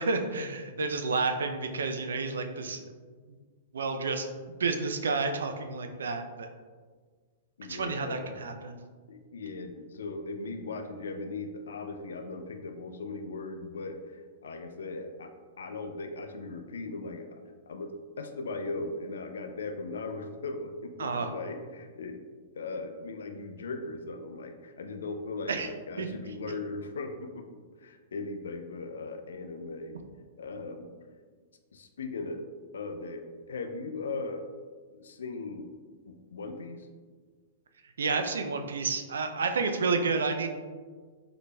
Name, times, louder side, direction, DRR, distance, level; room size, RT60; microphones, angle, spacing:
voice 1, 0.0-2.9 3.7-6.5 7.7-8.8 21.0-21.3 25.5-25.7 26.0-26.1 38.0-40.5, right 4 dB, 85° right, 6 dB, 0.3 m, -30 dB
voice 2, 7.6-8.3 9.1-15.3 15.6-22.2 22.5-30.0 30.4-30.9 31.7-32.4 32.7-34.4 34.9-35.7 36.1-36.9, left 3 dB, 80° left, 7 dB, 0.4 m, -38 dB
3.8 x 3.3 x 2.2 m, 1.5 s
hypercardioid pair, 120°, 0 cm